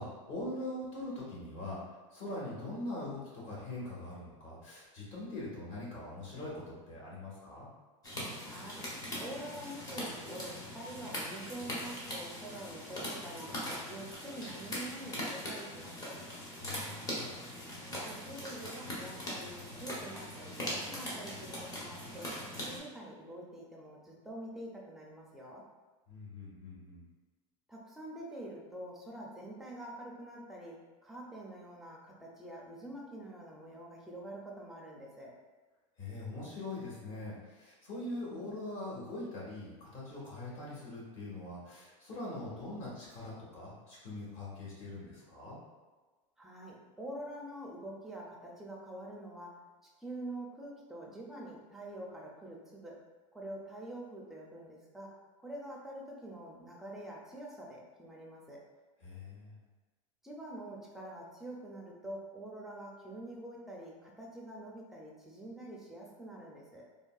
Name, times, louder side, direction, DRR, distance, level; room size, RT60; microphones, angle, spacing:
voice 1, 0.0-1.8 2.1-7.7 16.6-17.4 26.1-27.0 36.0-45.6 59.0-59.6, left 2 dB, 50° left, -6 dB, 1.3 m, -42 dB
sound 1, 8.0-22.8, equal, 25° left, 0.8 m, -41 dB
voice 2, 8.4-8.9 9.2-13.5 13.9-16.2 18.0-25.7 27.7-35.3 38.1-38.4 46.4-49.6 50.0-53.0 53.3-55.1 55.4-58.6 60.2-66.9, right 1 dB, ahead, -3 dB, 0.4 m, -46 dB
3.5 x 2.3 x 2.3 m, 1.3 s
supercardioid pair, 140°, 16 cm